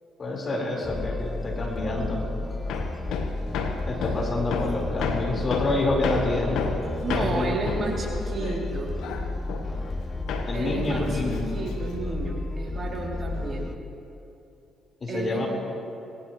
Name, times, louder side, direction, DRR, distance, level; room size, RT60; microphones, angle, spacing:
voice 1, 0.2-2.2 3.9-6.6 7.1-7.5 10.5-11.5 15.0-15.5, left 2 dB, 40° left, -1 dB, 4.1 m, -28 dB
sound 1, 0.8-13.8, left 2 dB, 25° left, 0.7 m, -32 dB
Hammer, 2.7-10.0 10.3-12.1, left 5 dB, 75° left, 1.2 m, -32 dB
voice 2, 3.9-4.6 7.0-8.9 10.5-13.7 15.1-15.5, right 3 dB, 45° right, -1 dB, 2.8 m, -32 dB
19.0 x 18.5 x 3.1 m, 2.8 s
supercardioid pair, 55°, 0 cm